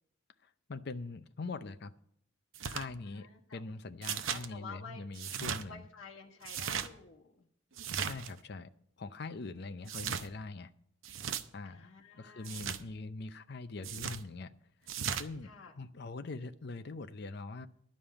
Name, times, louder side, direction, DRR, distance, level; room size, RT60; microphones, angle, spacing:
voice 1, 0.4-1.9 2.7-5.9 8.0-8.7 9.0-10.7 11.5-11.9 12.2-14.5 15.1-15.5 15.7-17.7, left 3 dB, 55° left, 11 dB, 0.5 m, -43 dB
sound 1, 2.5-2.9 4.0-4.5 5.1-5.6 6.4-6.9 7.8-8.3 9.9-10.3 11.0-11.4 12.4-12.8 13.8-14.2 14.9-15.3, right 8 dB, 75° right, 0.7 m, -37 dB
voice 2, 3.0-3.6 4.3-5.0 5.7-7.5 9.7-9.9 11.6-12.7 15.4-15.7, left 5 dB, 75° left, -2 dB, 1.4 m, -51 dB
11.5 x 5.3 x 8.7 m, 0.69 s
head